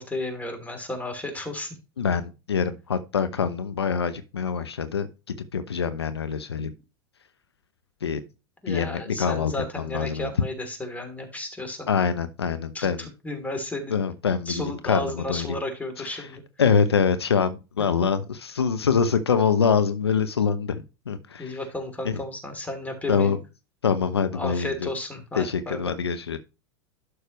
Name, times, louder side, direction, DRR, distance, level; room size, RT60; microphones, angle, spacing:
voice 1, 0.0-1.7 8.6-11.9 12.7-14.0 14.4-16.4 21.4-23.4 24.3-25.9, left 1 dB, 10° left, 3.1 m, -33 dB
voice 2, 2.0-6.7 8.0-8.2 8.7-9.5 9.9-10.3 11.9-13.1 13.9-14.5 14.8-15.6 16.1-16.2 16.6-21.6 22.0-22.2 23.1-23.4 23.8-24.9 25.4-26.4, left 6 dB, 80° left, 0.8 m, -25 dB
11.5 x 6.4 x 3.1 m
figure-of-eight pair, 85°, 13 cm